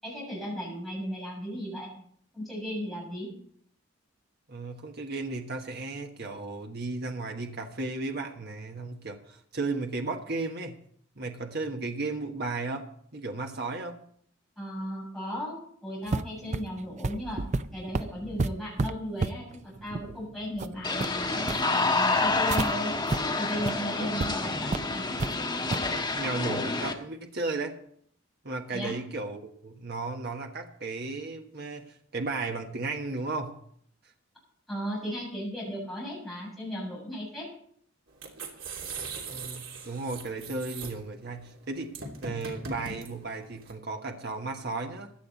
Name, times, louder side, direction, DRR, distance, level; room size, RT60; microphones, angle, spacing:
voice 1, 0.0-1.9 2.3-3.3 14.6-17.4 17.7-22.9 23.4-25.0 28.7-29.0 34.7-37.5, equal, ahead, -6 dB, 7.1 m, -36 dB
voice 2, 4.5-10.7 11.2-14.0 24.0-24.1 25.9-27.8 28.4-33.6 39.3-42.0 42.2-45.1, right 3 dB, 50° right, 4 dB, 1.3 m, -35 dB
sound 1, 16.1-22.7 23.1-23.2 23.6-23.7 24.2-24.3 24.7-25.3 25.7-25.9, right 3 dB, 35° right, 0.5 m, -32 dB
sound 2, 20.8-26.9, left 3 dB, 20° left, 1.3 m, -28 dB
sound 3, 38.1-43.7, right 4 dB, 75° right, 3.0 m, -40 dB
16.0 x 11.0 x 4.1 m, 0.64 s
head